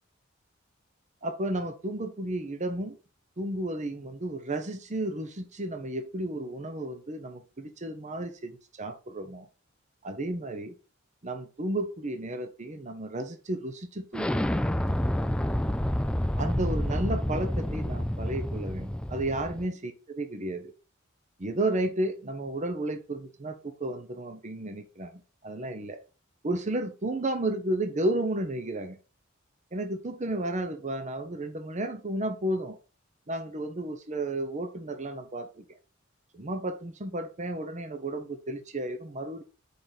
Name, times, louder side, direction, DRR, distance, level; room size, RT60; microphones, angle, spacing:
voice 1, 1.2-3.0 3.4-9.5 10.0-10.7 11.2-14.5 16.4-20.7 21.4-26.0 26.4-29.0 29.7-32.8 33.3-35.6 36.3-39.4, right 1 dB, 35° right, 8 dB, 0.8 m, -33 dB
Explosion, 14.1-19.7, left 1 dB, 5° left, 0.3 m, -29 dB
6.8 x 5.1 x 4.1 m, 0.33 s
head